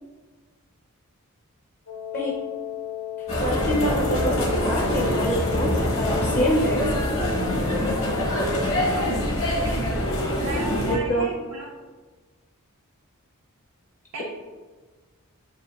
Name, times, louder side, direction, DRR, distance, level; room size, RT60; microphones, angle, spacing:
Wind instrument woodwind instrument, 1.9-9.7, left 11 dB, 80° left, 0.6 m, -35 dB
sound 1, 3.3-11.0, equal, 65° left, 1.1 m, -25 dB
voice 1, 3.4-6.9 10.9-11.3 14.2-14.3, equal, 40° left, -2 dB, 0.6 m, -25 dB
voice 2, 8.9-9.9 10.4-11.7 14.1-14.2, right 2 dB, 75° right, -1 dB, 0.4 m, -35 dB
7.5 x 2.5 x 2.4 m, 1.4 s
head